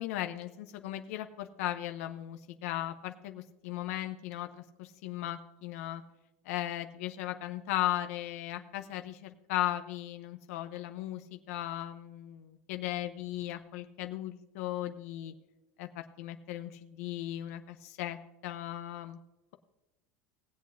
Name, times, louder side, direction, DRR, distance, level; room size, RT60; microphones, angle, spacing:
voice 1, 0.0-6.0 6.4-15.3 15.8-18.2 18.4-19.2, left 13 dB, 70° left, 7 dB, 0.7 m, -37 dB
19.0 x 8.4 x 2.6 m, 1.0 s
supercardioid pair, 175°, 8 cm